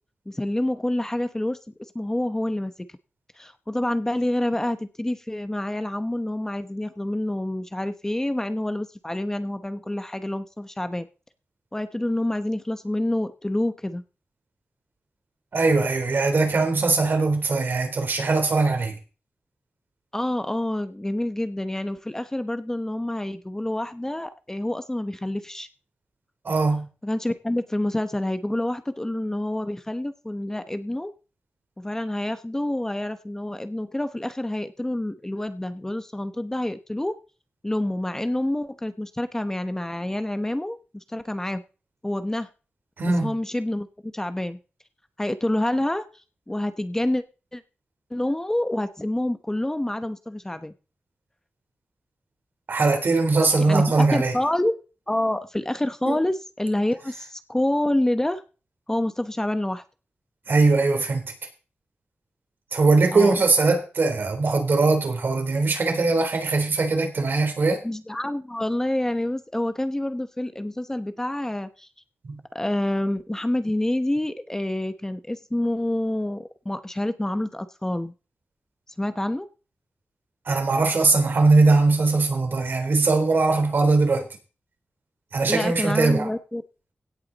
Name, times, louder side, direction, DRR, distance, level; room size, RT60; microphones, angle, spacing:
voice 1, 0.3-1.6 1.9-2.7 3.4-11.1 11.7-14.0 20.1-25.7 27.0-31.1 31.8-37.1 37.6-41.6 42.0-42.5 43.2-44.6 45.2-47.2 47.5-47.6 48.1-50.7 53.6-54.7 55.1-58.4 58.9-59.8 63.1-63.4 67.8-71.9 72.5-78.1 79.0-79.5 85.5-86.6, left 1 dB, 15° left, 0.9 m, -27 dB
voice 2, 15.5-18.9 26.4-26.9 43.0-43.3 52.7-54.3 56.1-56.2 60.5-61.3 62.7-67.8 72.2-72.4 80.5-84.3 85.3-86.3, right 3 dB, 65° right, 3.6 m, -21 dB
17.0 x 8.3 x 4.0 m
wide cardioid pair, 110°, 4 cm